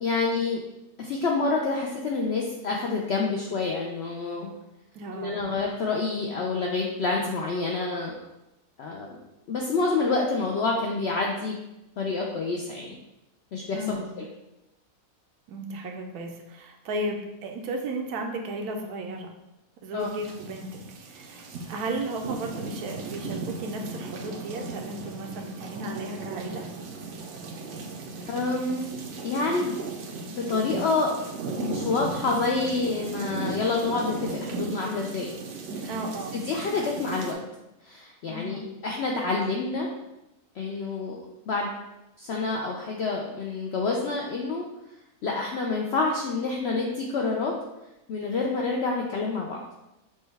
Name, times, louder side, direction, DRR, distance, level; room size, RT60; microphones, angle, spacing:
voice 1, 0.0-0.6 1.0-4.5 5.1-8.2 8.8-9.2 9.5-11.6 12.0-12.9 13.5-14.2 19.9-20.1 28.3-28.9 29.2-29.8 30.4-31.1 31.6-35.3 35.7-35.9 36.3-37.4 37.8-39.9 40.5-41.2 41.5-41.7 42.2-44.6 45.2-47.5 48.1-49.6, left 3 dB, 75° left, -1 dB, 0.6 m, -28 dB
voice 2, 4.9-5.5 13.7-14.1 15.5-19.3 19.8-20.7 21.1-26.6 35.9-36.4 38.3-38.6, right 1 dB, 80° right, 3 dB, 1.1 m, -34 dB
sound 1, 20.0-37.3, right 3 dB, 65° right, 0.8 m, -37 dB
6.1 x 2.2 x 3.3 m, 0.94 s
omnidirectional pair, 1.6 m